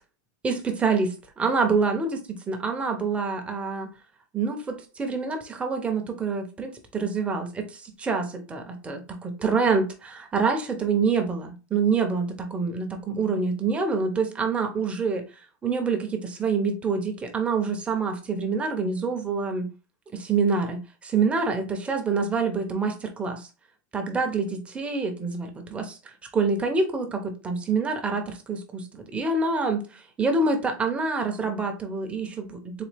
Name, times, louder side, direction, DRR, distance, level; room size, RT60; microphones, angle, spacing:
voice 1, 0.4-3.9 4.3-19.7 20.1-23.5 23.9-32.8, right 4 dB, 10° right, 0.6 m, -26 dB
4.0 x 2.7 x 3.3 m
supercardioid pair, 160°, 10 cm